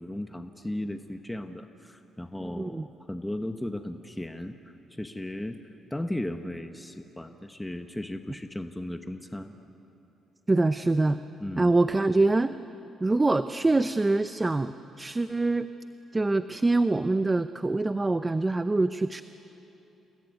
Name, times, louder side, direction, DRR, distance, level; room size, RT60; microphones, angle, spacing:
voice 1, 0.0-4.6 4.9-5.6 5.9-9.5 11.4-11.8, left 1 dB, 10° left, 6 dB, 1.2 m, -36 dB
voice 2, 2.4-2.9 10.5-11.2 11.6-12.6 13.0-15.7 16.1-19.2, right 2 dB, 20° right, 11 dB, 0.7 m, -25 dB
29.0 x 21.5 x 9.6 m, 3.0 s
cardioid pair, 90°, 0 cm